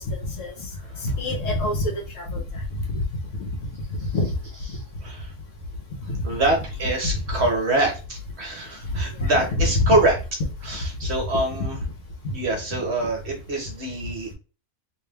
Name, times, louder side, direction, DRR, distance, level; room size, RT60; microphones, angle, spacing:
voice 1, 0.1-0.5 1.0-2.4 2.9-3.0 3.4-3.5 4.1-4.3 6.1-6.2 7.1-7.5 8.9-9.9, left 2 dB, 60° left, 2 dB, 1.3 m, -25 dB
voice 2, 5.0-5.3 6.2-10.2 10.7-11.8 12.3-14.3, right 2 dB, 50° right, 1 dB, 1.0 m, -25 dB
3.1 x 2.9 x 3.4 m, 0.33 s
omnidirectional pair, 1.6 m